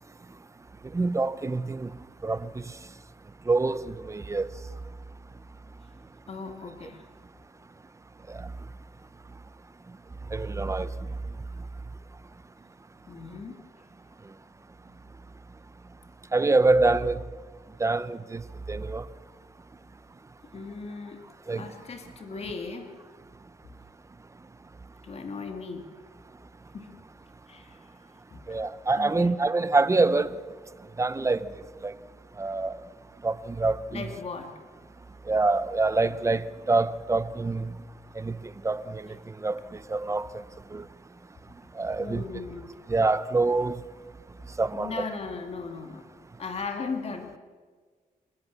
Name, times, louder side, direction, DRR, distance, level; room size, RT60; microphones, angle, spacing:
voice 1, 0.9-1.9 2.2-2.5 3.5-4.5 10.3-10.9 16.3-17.2 17.8-18.4 18.7-19.0 21.5-21.7 28.5-30.3 31.0-31.5 31.8-31.9 32.4-32.8 33.2-34.1 35.3-37.7 38.2-38.4 38.6-39.0 39.4-39.6 39.9-40.3 40.7-40.8 41.8-42.2 42.9-43.8 44.6-45.1, right 3 dB, 20° right, 0.7 m, -25 dB
voice 2, 6.3-7.1 13.1-13.6 20.5-21.2 21.5-22.9 25.0-26.0 26.7-26.9 27.5-27.9 28.3-28.4 29.0-29.3 33.9-34.5 42.0-42.8 44.7-46.0 46.4-47.4, left 4 dB, 45° left, 2.2 m, -37 dB
27.5 x 15.0 x 7.3 m
wide cardioid pair, 145°, 14 cm